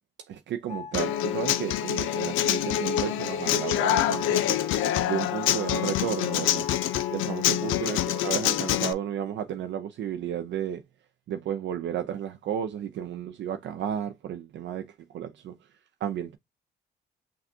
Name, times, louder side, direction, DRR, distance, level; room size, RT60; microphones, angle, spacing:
voice 1, 0.3-4.6 5.0-6.7 7.1-10.8 11.3-14.9 15.1-15.6 16.0-16.4, right 9 dB, 65° right, 0.5 m, -33 dB
sound 1, 0.7-7.7, left 7 dB, 35° left, 0.5 m, -42 dB
Human voice / Acoustic guitar, 0.9-8.9, left 12 dB, 90° left, 0.4 m, -26 dB
5.8 x 2.3 x 2.6 m
cardioid pair, 90°, 20 cm